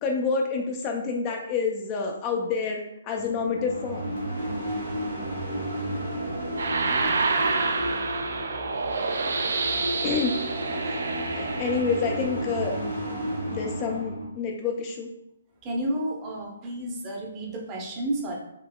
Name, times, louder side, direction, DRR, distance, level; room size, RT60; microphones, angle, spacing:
voice 1, 0.0-4.1 10.0-10.4 10.9-11.0 11.3-12.7 13.5-15.1, left 5 dB, 25° left, 1 dB, 0.4 m, -28 dB
sound 1, 3.2-14.2, right 1 dB, 80° right, 1.5 m, -32 dB
sound 2, 6.6-12.2, right 4 dB, 60° right, 0.3 m, -28 dB
voice 2, 15.6-18.3, right 1 dB, 25° right, -1 dB, 0.7 m, -31 dB
3.7 x 2.7 x 2.2 m, 0.80 s
figure-of-eight pair, 130°, 0 cm